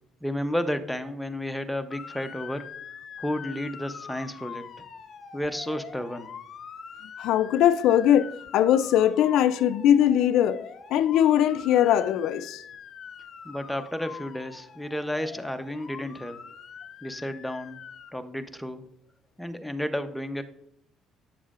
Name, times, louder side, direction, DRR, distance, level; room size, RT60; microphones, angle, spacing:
voice 1, 0.2-2.7 3.2-4.7 5.3-6.3 13.4-16.4 17.0-17.8 18.1-18.8 19.4-20.4, left 1 dB, ahead, 0.7 m, -32 dB
Motor vehicle (road) / Siren, 1.9-18.1, left 7 dB, 50° left, 0.7 m, -44 dB
voice 2, 7.2-10.6 10.9-12.6, left 10 dB, 75° left, 0.3 m, -21 dB
8.7 x 7.1 x 2.4 m
cardioid pair, 105°, 0 cm